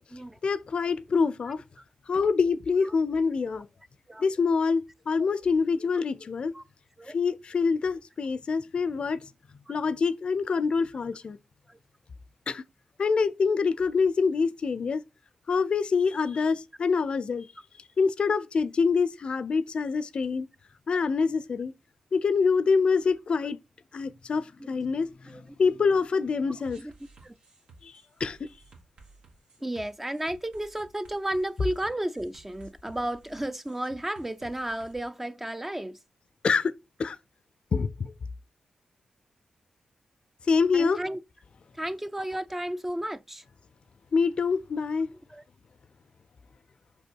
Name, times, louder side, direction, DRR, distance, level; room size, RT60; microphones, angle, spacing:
voice 1, 0.4-1.6 2.1-3.7 4.2-6.5 7.1-9.3 9.7-11.4 12.5-12.6 13.0-15.0 15.5-17.5 17.8-20.5 20.9-21.7 22.1-23.6 23.9-26.8 27.8-27.9 28.2-28.5 36.4-36.7 37.0-37.2 37.7-38.1 40.5-41.0 44.1-45.1, left 5 dB, 55° left, 0.5 m, -26 dB
sound 1, 26.7-34.9, right 3 dB, 75° right, 1.9 m, -54 dB
voice 2, 29.6-36.0 40.7-41.2 41.8-43.4 45.3-45.4, right 1 dB, 15° right, 0.5 m, -33 dB
5.6 x 5.3 x 4.5 m
cardioid pair, 75°, 2 cm